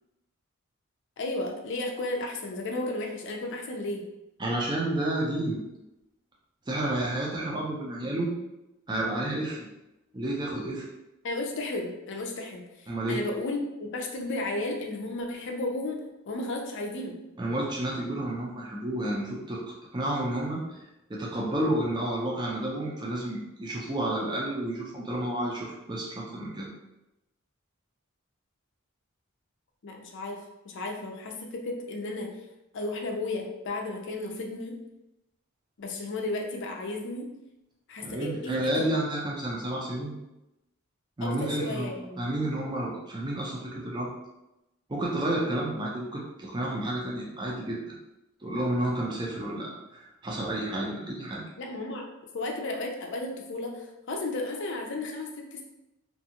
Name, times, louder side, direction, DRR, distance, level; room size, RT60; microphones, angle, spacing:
voice 1, 1.2-4.0 11.2-17.2 29.8-30.4 30.6-32.3 32.7-34.8 35.8-37.3 37.9-38.9 41.2-42.4 51.6-52.1 52.3-55.6, left 2 dB, 55° left, 2 dB, 0.4 m, -34 dB
voice 2, 4.4-5.6 6.7-8.3 8.9-9.7 10.1-10.9 12.9-13.2 17.4-19.6 19.9-20.8 21.1-26.7 38.0-40.1 41.2-44.1 44.9-48.0 48.4-51.4, right 1 dB, 20° right, -3 dB, 0.5 m, -30 dB
2.5 x 2.3 x 2.8 m, 0.92 s
head